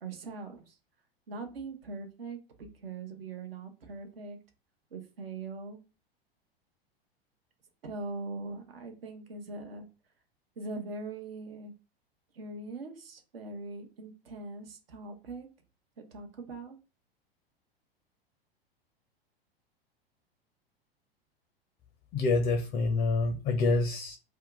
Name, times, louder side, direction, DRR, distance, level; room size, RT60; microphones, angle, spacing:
voice 1, 0.0-0.8 1.3-4.4 4.9-5.8 7.8-9.8 10.6-11.7 12.3-15.5 16.0-16.8, right 3 dB, 70° right, 5 dB, 0.8 m, -41 dB
voice 2, 22.1-24.2, left 3 dB, 25° left, 4 dB, 0.5 m, -27 dB
2.7 x 2.3 x 3.7 m, 0.32 s
figure-of-eight pair, 90°, 30 cm